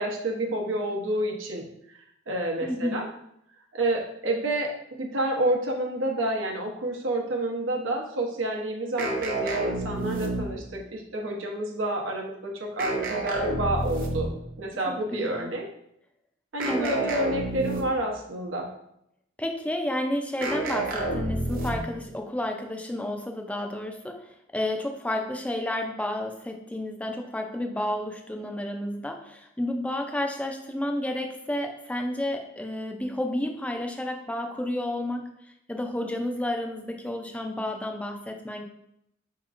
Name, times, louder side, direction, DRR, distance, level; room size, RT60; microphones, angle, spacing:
voice 1, 0.0-1.7 2.3-3.1 3.7-4.7 5.0-14.3 14.6-15.7 16.5-18.7, right 1 dB, 85° right, 0 dB, 0.8 m, -29 dB
voice 2, 2.6-3.1 14.9-15.5 16.6-17.0 19.4-24.3 24.5-35.3 35.7-38.6, left 1 dB, 5° left, 3 dB, 0.3 m, -31 dB
sound 1, 9.0-10.8 12.8-14.5 16.6-18.1 20.4-22.0, right 2 dB, 50° right, 0.6 m, -29 dB
4.8 x 2.9 x 2.4 m, 0.77 s
head